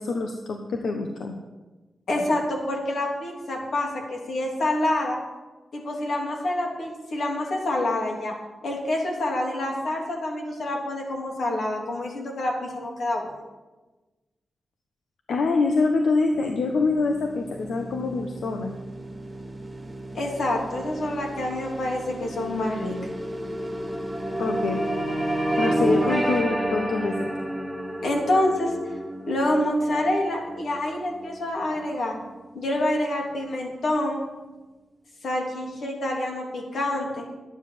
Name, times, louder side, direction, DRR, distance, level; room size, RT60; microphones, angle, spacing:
voice 1, 0.0-1.4 15.3-18.7 24.4-24.8 25.6-27.3, left 3 dB, 80° left, 3 dB, 1.2 m, -25 dB
voice 2, 2.1-5.2 5.7-8.3 8.6-13.4 20.1-23.0 28.0-28.7 29.3-32.2 32.5-34.2 35.2-37.3, left 1 dB, 65° left, 0 dB, 3.3 m, -27 dB
sound 1, 16.3-26.4, right 2 dB, 10° right, 1.6 m, -40 dB
sound 2, 20.0-32.5, right 1 dB, 5° left, 1.8 m, -30 dB
12.0 x 9.9 x 7.0 m, 1.2 s
wide cardioid pair, 140°, 0 cm